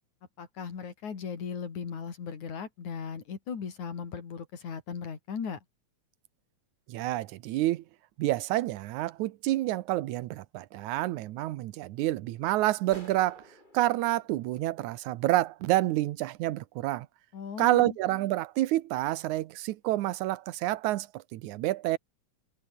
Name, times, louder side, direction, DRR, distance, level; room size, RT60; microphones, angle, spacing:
voice 1, 0.4-5.6 17.3-18.0, left 6 dB, 80° left, 4.8 m, -37 dB
voice 2, 6.9-7.8 8.2-13.4 13.7-17.1 17.6-22.0, right 16 dB, 85° right, 2.3 m, -28 dB
sound 1, 12.9-15.5, left 1 dB, 15° left, 7.2 m, -54 dB
omnidirectional pair, 3.3 m